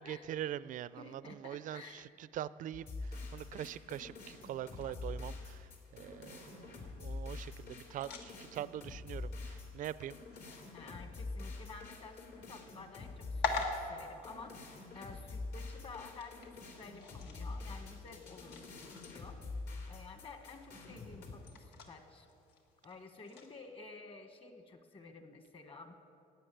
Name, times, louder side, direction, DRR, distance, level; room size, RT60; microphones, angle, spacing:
voice 1, 0.0-10.2, right 11 dB, 50° right, 17 dB, 0.4 m, -43 dB
voice 2, 1.0-2.0 10.7-22.3 22.8-26.0, left 3 dB, 30° left, 6 dB, 1.4 m, -52 dB
sound 1, 2.7-21.3, left 3 dB, 65° left, 3.3 m, -46 dB
sound 2, 4.7-23.6, left 3 dB, 85° left, 1.7 m, -47 dB
12.5 x 8.9 x 9.2 m, 2.5 s
cardioid pair, 110°, 17 cm